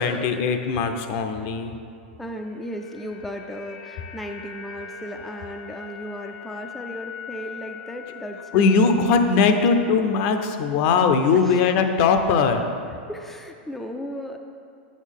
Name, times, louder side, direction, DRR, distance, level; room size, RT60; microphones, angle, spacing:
voice 1, 0.0-1.8 8.5-12.6, left 5 dB, 50° left, 7 dB, 0.5 m, -20 dB
sound 1, 2.2-10.5 10.8-10.9, left 6 dB, 70° left, 1.0 m, -42 dB
voice 2, 2.2-9.0 9.5-9.7 11.4-11.7 13.1-14.4, equal, 5° left, 3 dB, 0.3 m, -35 dB
7.3 x 6.0 x 3.6 m, 2.4 s
hypercardioid pair, 125°, 6 cm